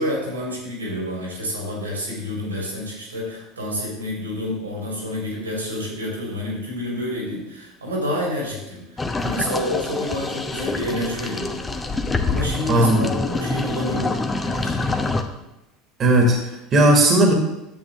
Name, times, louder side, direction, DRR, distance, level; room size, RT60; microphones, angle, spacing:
voice 1, 0.0-11.6 12.3-14.9, left 1 dB, 90° right, -2 dB, 3.2 m, -29 dB
sound 1, 9.0-15.2, left 3 dB, 20° left, 0.9 m, -26 dB
voice 2, 12.7-13.3 14.9-15.0 16.0-16.4 16.7-17.3, right 1 dB, 40° right, 2 dB, 1.8 m, -16 dB
10.5 x 7.9 x 3.5 m, 0.94 s
figure-of-eight pair, 75°, 0 cm